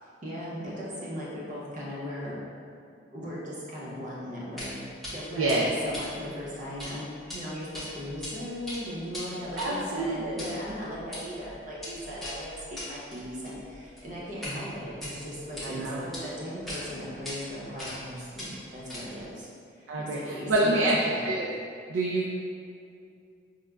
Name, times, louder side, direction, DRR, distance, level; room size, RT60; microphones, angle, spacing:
voice 1, 0.0-2.4 3.1-19.5 19.7-21.2, equal, 40° right, -6 dB, 0.7 m, -38 dB
sound 1, 4.6-4.7 5.0-5.1 5.5-6.9 7.2-7.4 7.7-8.3 8.6-14.6 14.9-15.7 16.1-16.2 16.7-16.8 17.2-17.4 17.8-18.1 18.4-19.3, left 1 dB, ahead, 0.6 m, -40 dB
voice 2, 5.4-5.7 9.6-10.4 15.6-16.0 19.9-20.2 20.5-21.0 21.2-21.5 21.9-22.3, right 2 dB, 85° right, -4 dB, 0.4 m, -26 dB
4.9 x 2.1 x 2.2 m, 2.4 s
head